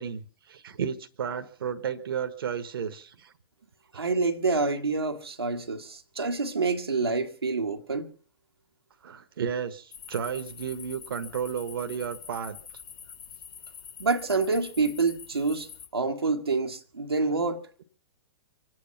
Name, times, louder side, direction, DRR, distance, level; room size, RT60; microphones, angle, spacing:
voice 1, 0.0-3.3 9.0-12.6 17.3-17.4, right 7 dB, 65° right, 1.4 m, -33 dB
voice 2, 3.9-8.1 14.0-15.7 15.9-17.7, right 3 dB, 90° right, 1.6 m, -27 dB
sound 1, 9.9-15.9, left 7 dB, 65° left, 3.0 m, -45 dB
24.5 x 9.5 x 5.8 m
figure-of-eight pair, 115°, 13 cm